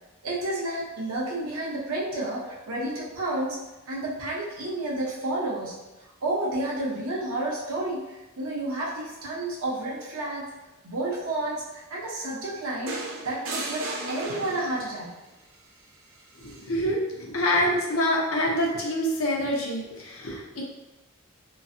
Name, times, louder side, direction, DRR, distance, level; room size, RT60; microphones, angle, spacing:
voice 1, 0.2-3.6 3.9-5.8 6.2-10.4 10.8-13.0 13.2-15.1, right 1 dB, 85° right, -4 dB, 0.9 m, -30 dB
sound 1, 12.9-15.0 16.4-16.6, right 2 dB, 65° right, 0.5 m, -35 dB
voice 2, 16.4-20.6, equal, 75° left, -2 dB, 0.7 m, -26 dB
3.0 x 2.5 x 2.7 m, 1.0 s
head